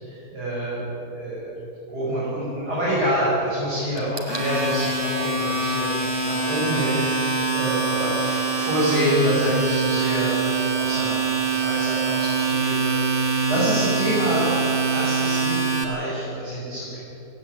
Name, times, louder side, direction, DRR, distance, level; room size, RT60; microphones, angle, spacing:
voice 1, 0.0-1.6 1.9-6.0 6.2-14.6 14.9-17.0, right 1 dB, 80° right, -9 dB, 7.2 m, -26 dB
Domestic sounds home sounds, 4.0-15.8, right 4 dB, 15° right, 2.3 m, -24 dB
17.5 x 17.0 x 9.6 m, 3.0 s
omnidirectional pair, 1.7 m